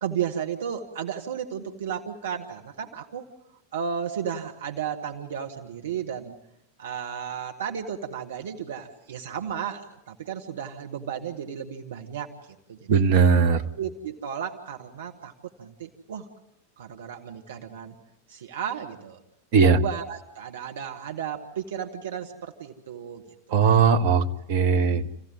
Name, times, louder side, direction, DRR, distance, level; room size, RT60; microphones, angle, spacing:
voice 1, 0.0-3.2 3.7-6.4 6.8-13.0 13.8-15.3 15.6-16.3 16.8-17.9 18.3-19.2 19.6-23.2 23.6-23.8 24.7-25.1, right 8 dB, 60° right, 4 dB, 1.7 m, -34 dB
voice 2, 12.9-13.6 19.5-19.8 23.5-25.0, right 6 dB, 45° right, 7 dB, 1.3 m, -19 dB
28.0 x 15.5 x 9.5 m, 0.83 s
figure-of-eight pair, 90°, 0 cm